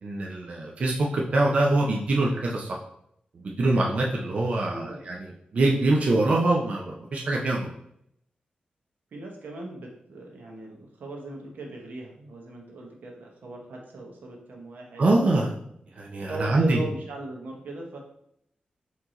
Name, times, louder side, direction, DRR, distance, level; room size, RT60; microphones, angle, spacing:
voice 1, 0.0-2.8 3.3-7.7 15.0-15.5 16.0-16.8, right 2 dB, 45° right, -2 dB, 0.5 m, -24 dB
voice 2, 4.7-5.1 9.1-15.3 16.3-18.0, right 2 dB, 85° right, 0 dB, 1.0 m, -39 dB
4.6 x 2.8 x 3.8 m, 0.72 s
wide cardioid pair, 180°, 3 cm